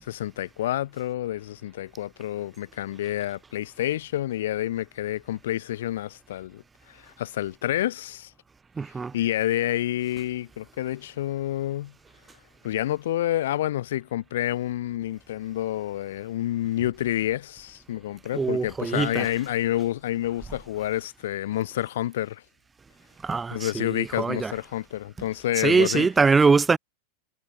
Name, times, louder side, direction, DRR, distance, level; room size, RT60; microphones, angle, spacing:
voice 1, 0.0-8.3 9.1-11.9 12.6-22.4 23.5-26.1, left 13 dB, 55° left, 3.9 m, -29 dB
voice 2, 8.8-9.1 18.3-19.2 23.2-24.5 25.6-26.8, right 4 dB, 15° right, 1.3 m, -22 dB
figure-of-eight pair, 90°, 0 cm